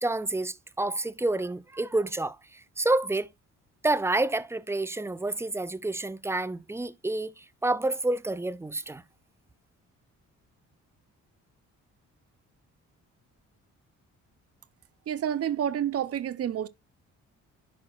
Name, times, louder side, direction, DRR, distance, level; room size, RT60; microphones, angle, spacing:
voice 1, 0.0-3.3 3.8-9.0, right 2 dB, 10° right, 0.4 m, -29 dB
voice 2, 15.1-16.7, right 10 dB, 50° right, 0.7 m, -29 dB
11.0 x 4.2 x 2.4 m
cardioid pair, 90°, 30 cm